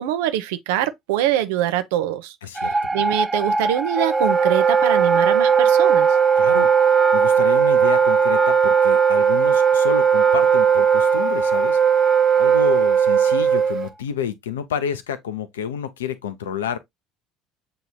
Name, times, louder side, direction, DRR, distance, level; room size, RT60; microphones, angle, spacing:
voice 1, 0.0-2.7 2.9-6.2, right 12 dB, 65° right, 0.5 m, -24 dB
voice 2, 2.4-2.7 6.4-11.8 12.4-16.8, left 8 dB, 75° left, 0.5 m, -29 dB
sound 1, 2.5-13.7, right 1 dB, 10° right, 0.5 m, -28 dB
Wind instrument woodwind instrument, 4.0-13.9, right 7 dB, 40° right, 1.0 m, -17 dB
7.7 x 2.9 x 2.3 m
figure-of-eight pair, 60°, 0 cm